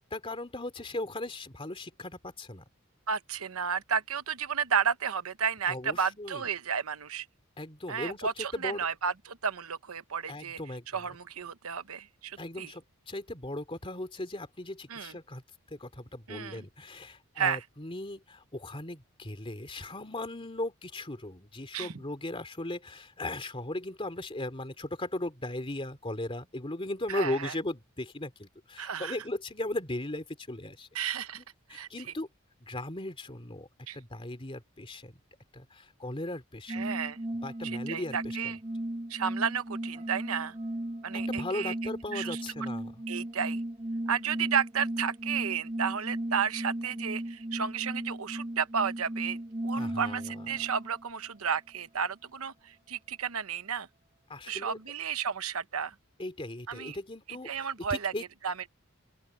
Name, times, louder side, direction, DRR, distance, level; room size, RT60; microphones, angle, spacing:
voice 1, 0.1-2.6 5.7-6.4 7.6-8.9 10.3-11.2 12.4-15.4 15.7-30.9 31.7-32.3 32.6-33.7 33.9-35.2 35.5-36.9 37.4-38.5 41.3-43.0 49.7-50.6 54.3-54.8 56.2-58.2, left 1 dB, 25° left, 2.8 m, -37 dB
voice 2, 3.1-7.3 7.9-10.6 10.9-12.7 14.9-15.1 16.3-16.6 17.4-17.6 21.7-21.9 27.1-27.5 28.8-29.2 30.9-31.4 31.7-31.9 33.9-34.0 36.7-37.2 37.6-38.6 39.1-40.5 41.0-41.7 42.1-42.4 43.1-43.6 44.1-49.4 49.6-53.9 54.5-55.9 56.7-57.0 57.4-58.1 58.4-58.7, right 7 dB, 90° right, 1.0 m, -32 dB
sound 1, 36.7-51.1, right 1 dB, 25° right, 1.0 m, -36 dB
open air
head